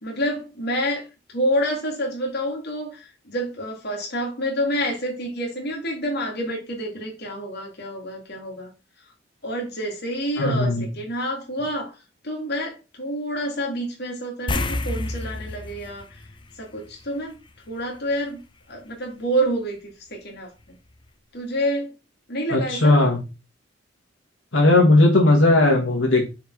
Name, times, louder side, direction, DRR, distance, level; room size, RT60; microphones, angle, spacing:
voice 1, 0.0-1.0 1.3-8.7 9.4-11.9 12.2-16.1 16.6-17.3 17.7-18.4 18.7-20.8 21.3-21.9 22.3-23.0, equal, 60° left, 3.0 m, -28 dB
voice 2, 10.4-10.9 22.5-23.2 24.5-26.3, left 2 dB, 90° left, 2.4 m, -17 dB
sound 1, 14.5-17.3 17.6-17.7 20.6-20.7 21.1-21.2, left 2 dB, 25° left, 0.7 m, -29 dB
6.6 x 4.8 x 4.8 m
head